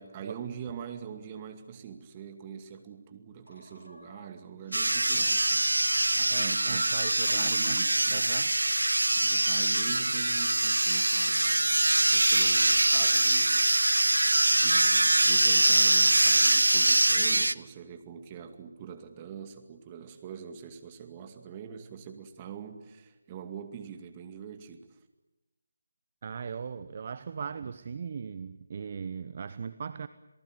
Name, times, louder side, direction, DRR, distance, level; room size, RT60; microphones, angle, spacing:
voice 1, 0.0-5.6 6.2-7.0 7.3-8.4 9.2-11.8 12.1-13.6 14.5-25.0, right 8 dB, 20° right, 7 dB, 2.3 m, -43 dB
sound 1, 3.4-6.2 6.9-8.9, left 1 dB, 85° left, 3.2 m, -51 dB
sound 2, 4.7-17.5, right 2 dB, 80° right, 0.9 m, -24 dB
voice 2, 6.3-7.8 8.1-8.6 26.2-30.1, right 6 dB, 40° right, 13 dB, 0.9 m, -38 dB
28.0 x 19.0 x 9.4 m, 1.0 s
figure-of-eight pair, 160°, 0 cm